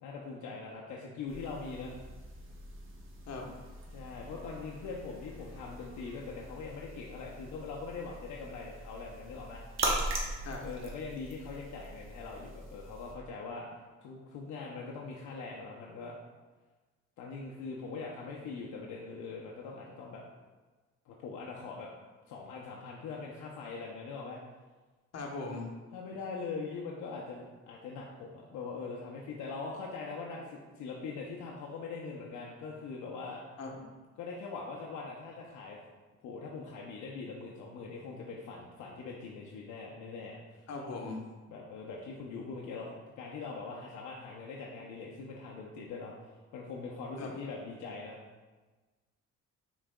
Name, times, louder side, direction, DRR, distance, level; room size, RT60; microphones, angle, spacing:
voice 1, 0.0-1.9 3.9-9.6 10.6-13.7 14.0-16.1 17.2-20.2 21.1-21.9 22.3-24.4 25.9-33.4 34.2-35.8 36.2-40.6 41.5-46.1 46.5-48.2, left 4 dB, 80° left, -2 dB, 0.6 m, -42 dB
sound 1, 1.3-13.1, right 2 dB, 45° right, 1.0 m, -41 dB
voice 2, 25.1-25.7 33.6-33.8 40.7-41.2 47.2-47.3, left 3 dB, 60° left, 0 dB, 0.9 m, -39 dB
6.0 x 4.0 x 2.2 m, 1.3 s
cardioid pair, 90°, 30 cm